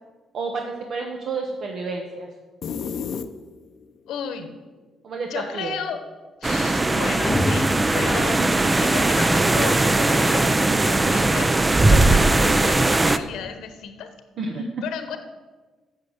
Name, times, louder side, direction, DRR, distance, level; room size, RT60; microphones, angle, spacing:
voice 1, 0.3-2.3 5.0-5.7 14.4-14.7, right 4 dB, 65° right, 2 dB, 1.1 m, -30 dB
sound 1, 2.6-3.9, left 6 dB, 60° left, 0.7 m, -31 dB
voice 2, 4.1-4.5 5.3-6.0 6.4-11.5 11.9-14.1 14.8-15.2, left 7 dB, 85° left, 8 dB, 1.2 m, -33 dB
sound 2, 6.4-13.2, right 2 dB, 20° right, 0.5 m, -19 dB
sound 3, 7.2-9.4, left 2 dB, 25° left, 0.7 m, -29 dB
8.5 x 6.6 x 8.0 m, 1.3 s
cardioid pair, 90°, 0 cm